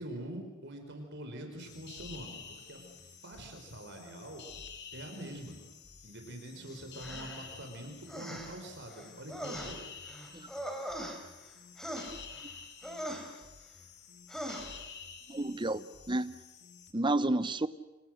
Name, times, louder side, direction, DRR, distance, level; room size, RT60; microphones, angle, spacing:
voice 1, 0.0-4.4 4.9-5.6 6.0-9.8, right 1 dB, 55° right, 4.9 m, -45 dB
sound 1, 1.6-16.9, left 6 dB, 55° left, 2.5 m, -50 dB
sound 2, 7.0-7.5 8.1-8.6 8.9-11.5 11.8-12.5 12.8-13.4 14.3-14.7, equal, ahead, 4.1 m, -41 dB
voice 2, 15.3-16.4 16.9-17.7, right 2 dB, 20° right, 0.9 m, -31 dB
29.5 x 27.5 x 6.6 m
head